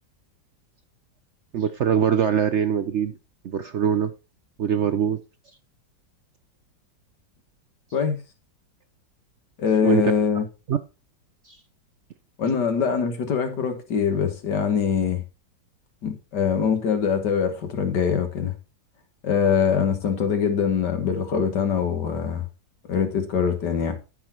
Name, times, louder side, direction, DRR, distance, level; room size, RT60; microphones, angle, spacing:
voice 1, 1.5-3.1 3.4-4.1 4.6-5.2 9.8-10.1 10.7-10.8 11.5-11.6, right 8 dB, 75° right, 0.6 m, -22 dB
voice 2, 9.6-10.5 12.4-15.2 16.0-18.6 19.2-22.5 22.9-24.0, left 7 dB, 65° left, 2.2 m, -23 dB
11.5 x 6.2 x 4.4 m
omnidirectional pair, 2.0 m